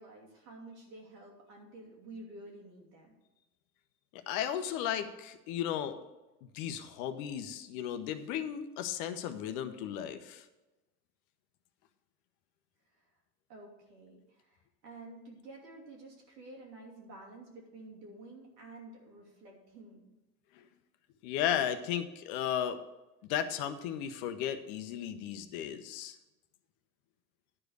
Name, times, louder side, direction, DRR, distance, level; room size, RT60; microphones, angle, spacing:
voice 1, 0.0-3.1 12.9-13.1 13.5-20.2, right 2 dB, 80° right, -1 dB, 2.8 m, -51 dB
voice 2, 4.1-6.0 6.5-10.4 21.2-22.8 23.3-26.1, left 10 dB, 60° left, 9 dB, 1.0 m, -35 dB
11.0 x 5.0 x 6.5 m, 1.0 s
hypercardioid pair, 80°, 48 cm